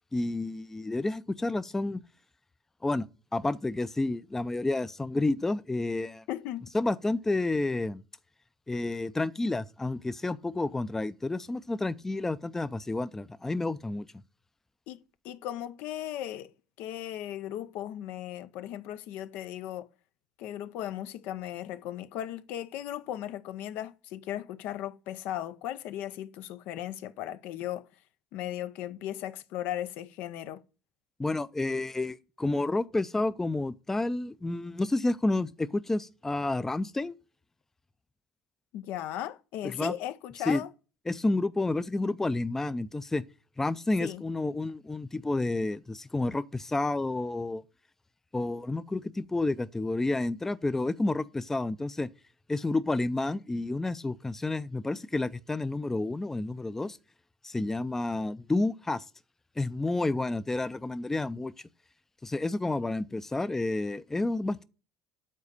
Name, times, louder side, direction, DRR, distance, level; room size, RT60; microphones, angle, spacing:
voice 1, 0.1-2.0 2.8-3.1 3.3-6.2 6.7-8.0 8.7-14.1 31.2-37.2 39.6-39.9 40.5-40.6 41.1-43.2 43.6-47.6 48.3-52.1 52.5-57.0 57.4-59.0 59.6-61.5 62.2-64.6, left 2 dB, 10° left, 0.4 m, -30 dB
voice 2, 6.3-6.7 14.9-16.5 16.8-19.9 20.4-27.9 28.3-30.6 38.7-40.7 44.0-44.2, left 12 dB, 65° left, 0.5 m, -37 dB
7.4 x 4.1 x 6.5 m
supercardioid pair, 85°, 3 cm